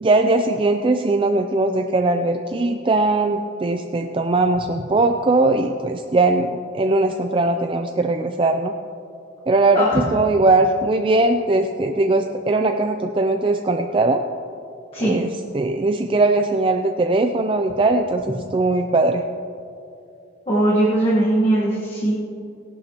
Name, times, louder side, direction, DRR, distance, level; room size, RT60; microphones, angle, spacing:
voice 1, 0.0-8.7 9.5-14.2 15.0-19.2, right 2 dB, 25° right, 5 dB, 0.4 m, -20 dB
voice 2, 20.5-22.2, right 1 dB, 30° left, -5 dB, 1.4 m, -19 dB
18.0 x 11.0 x 3.0 m, 2.8 s
head